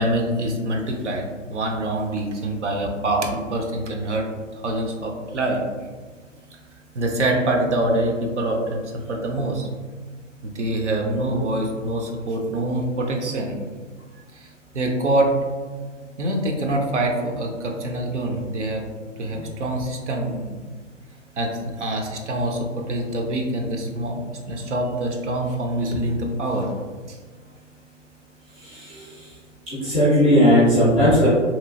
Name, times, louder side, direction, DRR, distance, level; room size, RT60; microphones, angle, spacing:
voice 1, 0.0-4.3 4.6-5.6 6.9-8.8 9.1-9.7 10.4-13.5 14.3-14.5 14.7-15.3 16.2-18.8 19.2-20.6 21.4-26.7 27.1-27.2, right 1 dB, 65° right, 1 dB, 0.6 m, -25 dB
voice 2, 28.6-29.3 29.7-31.3, equal, 10° right, -12 dB, 0.4 m, -18 dB
3.0 x 2.4 x 2.5 m, 1.5 s
figure-of-eight pair, 125°, 38 cm